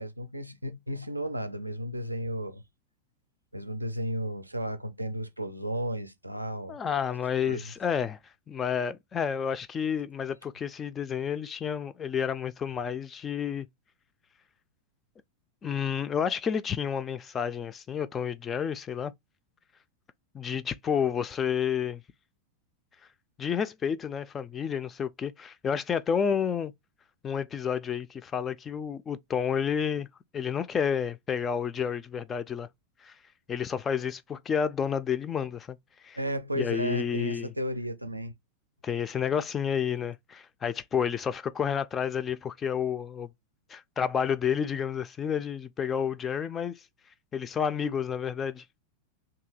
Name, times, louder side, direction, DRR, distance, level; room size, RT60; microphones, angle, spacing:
voice 1, 0.0-2.6 3.5-6.8 7.4-7.6 36.2-38.3, equal, 85° right, 0.5 m, -33 dB
voice 2, 6.7-8.2 8.5-13.7 15.6-19.1 20.3-22.0 23.4-26.7 27.2-30.1 30.3-32.7 33.0-33.1 33.5-35.8 36.0-36.2 36.6-37.5 38.8-43.3 43.7-46.8 47.3-48.6, left 7 dB, 20° left, 0.3 m, -30 dB
2.8 x 2.7 x 3.8 m
figure-of-eight pair, 90°, 0 cm